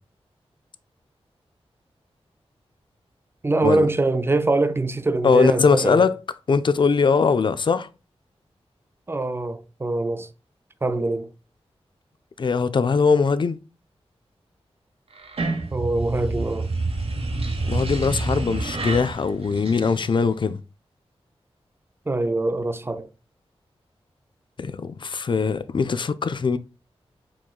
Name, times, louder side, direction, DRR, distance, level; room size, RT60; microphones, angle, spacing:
voice 1, 3.4-6.1 9.1-10.3 10.8-11.3 15.7-16.7 22.1-23.1, right 2 dB, 20° right, 0.4 m, -23 dB
voice 2, 5.2-6.1 6.5-7.9 12.4-13.6 17.6-20.6 24.6-26.6, left 5 dB, 45° left, 0.4 m, -21 dB
sound 1, 15.1-20.4, right 2 dB, 65° right, 0.9 m, -28 dB
4.7 x 3.7 x 2.3 m
cardioid pair, 60°, 11 cm